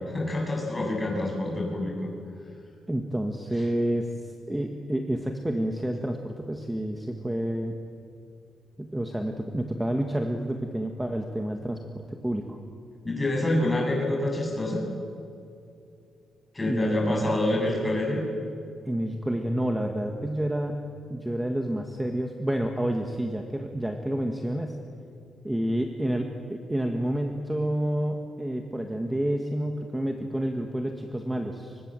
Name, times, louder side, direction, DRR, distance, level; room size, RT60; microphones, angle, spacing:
voice 1, 0.1-2.1 3.5-3.6 13.0-14.8 16.5-18.2, left 1 dB, 15° left, -1 dB, 7.8 m, -27 dB
voice 2, 2.9-4.1 4.5-7.7 8.8-12.6 16.6-17.6 18.8-20.8 21.1-24.8 25.4-31.8, right 1 dB, 10° right, 4 dB, 1.8 m, -29 dB
29.0 x 25.0 x 7.8 m, 2.5 s
cardioid pair, 125°, 0 cm